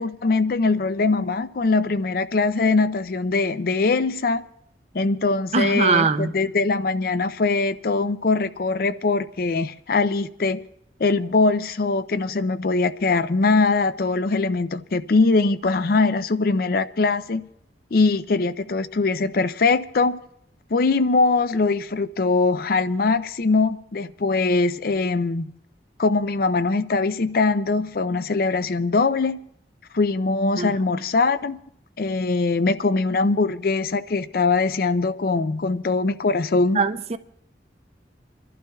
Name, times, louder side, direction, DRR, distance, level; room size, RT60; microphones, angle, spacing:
voice 1, 0.0-4.4 4.9-10.6 11.0-17.4 17.9-20.2 20.7-25.5 26.0-29.4 29.9-31.6 32.0-36.8, left 3 dB, 55° left, 0.5 m, -22 dB
voice 2, 5.5-6.3 30.6-30.7 36.7-37.2, right 4 dB, 35° right, 0.5 m, -21 dB
29.0 x 12.0 x 2.3 m
head